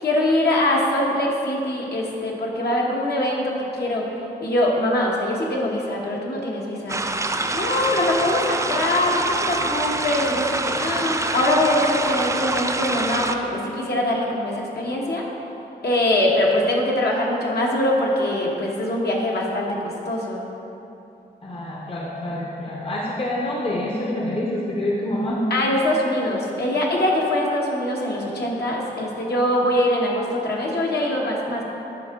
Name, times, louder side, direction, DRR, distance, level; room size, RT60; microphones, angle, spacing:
voice 1, 0.0-4.0 4.4-7.0 7.5-15.2 15.8-19.8 20.1-20.4 25.5-31.6, left 1 dB, 65° left, -2 dB, 1.2 m, -23 dB
sound 1, 6.9-13.4, right 2 dB, 15° right, 0.4 m, -25 dB
voice 2, 21.4-25.5, left 1 dB, 30° left, -3 dB, 0.8 m, -26 dB
10.5 x 3.7 x 3.7 m, 3.0 s
cardioid pair, 65°, 18 cm